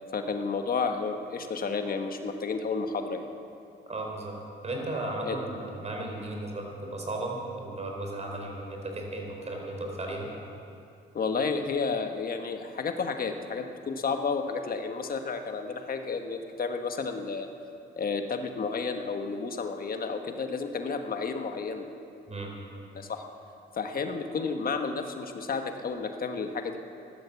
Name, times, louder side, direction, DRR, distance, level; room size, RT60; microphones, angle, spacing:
voice 1, 0.1-3.2 5.2-5.4 11.1-17.5 18.0-21.9 22.9-23.2 23.7-26.8, left 4 dB, 45° left, 5 dB, 1.4 m, -31 dB
voice 2, 3.9-4.3 4.6-10.3 22.3-22.5, right 2 dB, 35° right, 0 dB, 4.1 m, -35 dB
15.5 x 12.0 x 7.1 m, 2.7 s
cardioid pair, 90°, 20 cm